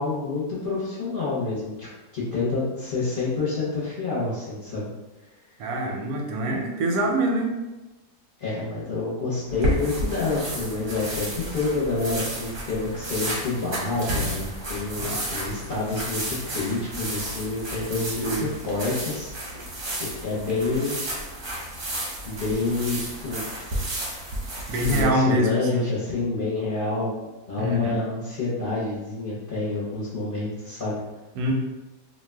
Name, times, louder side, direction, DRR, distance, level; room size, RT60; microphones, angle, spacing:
voice 1, 0.0-4.9 8.4-19.3 20.0-21.0 22.3-23.5 24.9-31.0, left 3 dB, 50° left, -9 dB, 0.7 m, -28 dB
voice 2, 5.6-7.6 15.0-15.3 18.2-18.5 24.7-25.9 27.6-27.9 31.3-31.5, right 1 dB, 85° right, 1 dB, 1.1 m, -25 dB
sound 1, 9.5-25.0, right 1 dB, 50° right, 0.7 m, -32 dB
2.6 x 2.1 x 3.3 m, 1.1 s
omnidirectional pair, 1.6 m